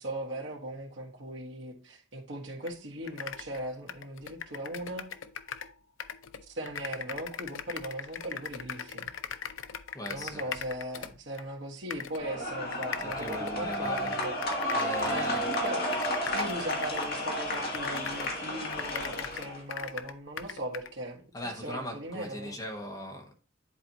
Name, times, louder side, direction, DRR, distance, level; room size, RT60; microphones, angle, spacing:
voice 1, 0.0-5.1 6.4-9.1 10.1-14.3 15.0-15.9 16.2-21.2 21.6-22.6, right 1 dB, 70° right, 1.5 m, -39 dB
sound 1, 2.7-2.8 3.0-5.7 6.0-11.5 11.9-12.2 12.7-18.4 18.7-20.9, left 8 dB, 90° left, 0.5 m, -40 dB
voice 2, 9.9-10.5 13.0-14.3 14.7-15.6 21.3-23.3, equal, 20° left, 1.3 m, -39 dB
sound 2, 12.2-19.6, equal, 50° left, 1.8 m, -32 dB
10.0 x 4.2 x 2.9 m
head